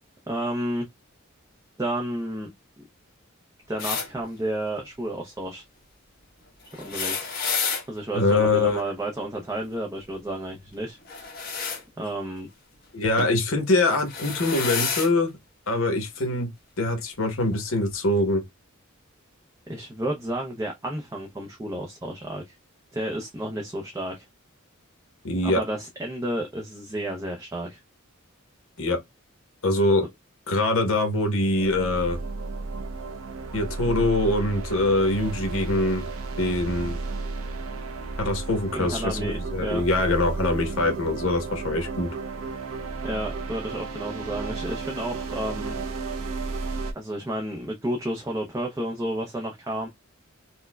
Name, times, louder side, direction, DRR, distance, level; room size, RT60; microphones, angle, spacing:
voice 1, 0.3-0.9 1.8-2.5 2.8-2.9 3.7-5.6 6.8-7.3 7.9-11.4 12.0-12.5 19.7-22.6 22.9-24.3 25.4-27.8 38.7-39.8 43.0-45.7 46.9-49.9, right 1 dB, 15° right, 0.5 m, -31 dB
sound 1, 3.8-4.1 6.7-7.8 11.0-11.8 13.2-13.4 14.0-15.1 16.1-16.2 17.4-17.5, left 5 dB, 45° left, 1.3 m, -29 dB
voice 2, 8.1-8.8 12.9-15.3 15.7-16.5 16.8-18.4 25.2-25.6 28.8-29.0 29.6-30.1 30.5-32.2 33.5-36.1 36.4-37.0 38.2-42.1, left 2 dB, 70° left, 1.1 m, -23 dB
sound 2, 31.6-46.9, right 3 dB, 75° right, 0.6 m, -33 dB
4.3 x 2.1 x 2.2 m
head